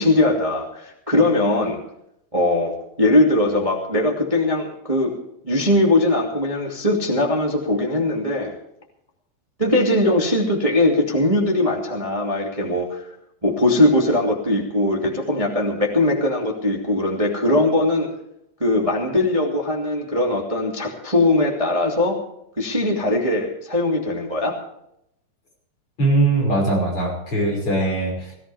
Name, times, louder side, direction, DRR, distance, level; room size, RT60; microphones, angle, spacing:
voice 1, 0.0-1.8 2.3-2.7 3.0-5.1 5.4-8.5 9.6-13.0 13.4-18.1 18.6-22.2 22.6-24.6, left 1 dB, 20° right, -1 dB, 0.9 m, -20 dB
voice 2, 26.0-28.3, right 2 dB, 25° left, 0 dB, 6.3 m, -21 dB
20.0 x 15.0 x 3.5 m, 0.77 s
omnidirectional pair, 5.5 m